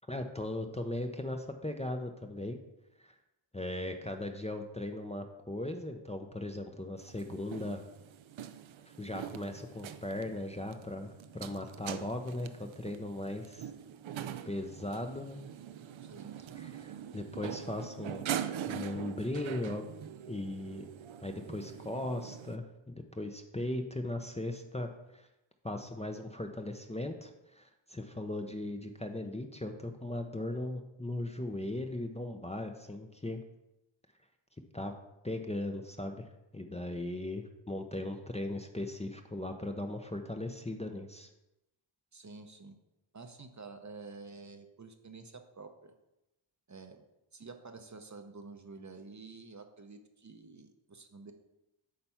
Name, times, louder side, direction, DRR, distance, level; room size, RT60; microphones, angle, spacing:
voice 1, 0.1-2.6 3.0-3.1 3.5-7.8 8.9-13.7 14.5-15.4 16.5-18.3 18.7-19.9 20.3-20.9 21.2-22.6 23.1-25.3 25.6-33.4 34.7-34.9 35.2-41.3, left 1 dB, 15° left, 4 dB, 0.7 m, -38 dB
sound 1, 7.0-22.6, right 10 dB, 70° right, 0.6 m, -43 dB
voice 2, 16.0-16.7 42.1-42.8 43.1-45.9 46.7-47.0 47.3-51.3, right 4 dB, 35° right, 6 dB, 0.8 m, -49 dB
8.7 x 3.4 x 5.6 m, 0.93 s
cardioid pair, 55°, 50 cm